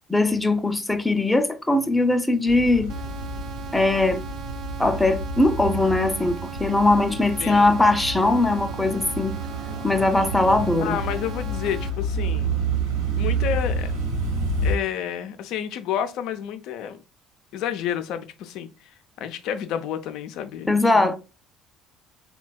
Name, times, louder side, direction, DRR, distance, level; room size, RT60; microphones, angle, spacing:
voice 1, 0.1-2.9 3.7-4.2 4.8-9.4 9.8-11.0 20.7-21.2, left 2 dB, 10° left, 0.5 m, -20 dB
sound 1, 2.5-14.7, right 3 dB, 75° right, 1.0 m, -29 dB
sound 2, 2.9-11.9, right 8 dB, 50° right, 0.4 m, -39 dB
voice 2, 7.4-7.7 10.8-12.5 13.1-13.9 14.6-17.0 17.5-18.7 19.2-21.1, left 9 dB, 60° left, 0.4 m, -30 dB
3.9 x 2.2 x 2.2 m
figure-of-eight pair, 55°, 0 cm